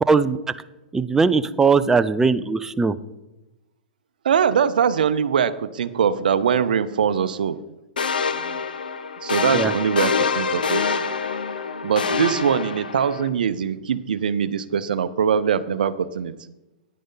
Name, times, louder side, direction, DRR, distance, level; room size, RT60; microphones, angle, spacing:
voice 1, 0.9-3.0 9.5-9.7, right 4 dB, 10° right, 13 dB, 0.4 m, -19 dB
voice 2, 4.2-7.6 8.4-8.6 9.2-10.8 11.8-16.3, right 7 dB, 75° right, 13 dB, 0.7 m, -22 dB
sound 1, 8.0-13.3, left 5 dB, 85° left, 0.8 m, -25 dB
10.0 x 9.3 x 3.9 m, 0.97 s
hypercardioid pair, 115°, 5 cm